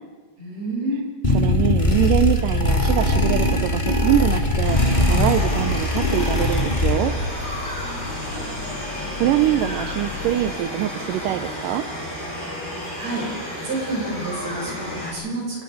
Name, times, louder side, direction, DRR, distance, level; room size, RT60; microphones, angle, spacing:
voice 1, 0.4-1.0 8.0-8.4 13.0-13.3 13.6-15.6, right 2 dB, 50° right, -3 dB, 8.1 m, -29 dB
sound 1, 1.2-7.3, left 2 dB, 20° left, 1.3 m, -20 dB
voice 2, 1.3-7.1 9.0-11.9, right 12 dB, 80° right, 8 dB, 2.4 m, -23 dB
sound 2, 4.6-15.1, equal, 5° right, 6.5 m, -32 dB
sound 3, 5.7-11.0, left 4 dB, 50° left, 1.8 m, -36 dB
28.5 x 19.0 x 5.1 m, 1.4 s
omnidirectional pair, 4.0 m